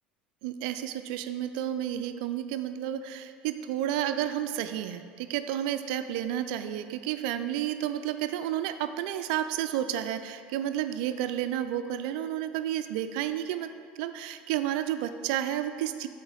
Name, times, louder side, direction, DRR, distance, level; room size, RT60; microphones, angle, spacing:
voice 1, 0.4-13.7 14.0-16.1, right 11 dB, 65° right, 10 dB, 0.3 m, -31 dB
7.9 x 3.8 x 3.8 m, 2.1 s
hypercardioid pair, 75°, 5 cm